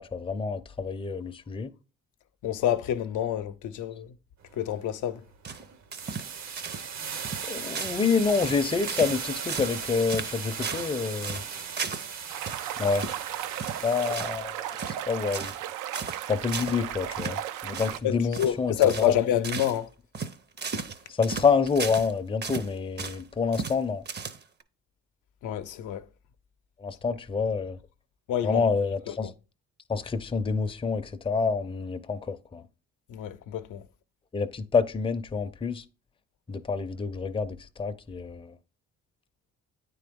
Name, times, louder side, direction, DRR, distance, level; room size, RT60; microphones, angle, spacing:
voice 1, 0.0-1.7 7.5-11.4 12.8-13.1 13.8-14.6 14.8-15.5 16.2-19.1 21.1-24.0 26.8-27.8 28.4-29.3 29.9-32.6 34.3-35.8 36.5-38.5, left 5 dB, 20° left, 0.5 m, -27 dB
voice 2, 2.4-4.1 4.6-5.2 18.0-19.9 25.4-26.0 28.3-28.6 29.1-29.3 33.1-33.8, left 11 dB, 80° left, 0.6 m, -27 dB
sound 1, 4.4-4.7 5.2-14.2, right 7 dB, 65° right, 0.9 m, -37 dB
sound 2, 5.4-6.3 6.6-6.9 7.1-7.4 7.7-8.0 8.3-9.2 9.5-9.8 10.1-10.9 11.2-12.1 12.4-12.6 12.9-13.2 13.6-14.4 14.7-15.0 15.3-15.6 15.9-16.2 16.5-16.8 17.1-17.4 17.7-18.0 18.3-18.5 18.8-19.1 19.4-19.8 20.1-22.1 22.4-23.2 23.5-23.8 24.0-24.6, right 5 dB, 35° right, 0.6 m, -35 dB
sound 3, 12.3-18.0, right 11 dB, 90° right, 0.5 m, -35 dB
9.0 x 3.8 x 3.5 m
cardioid pair, 90°, 30 cm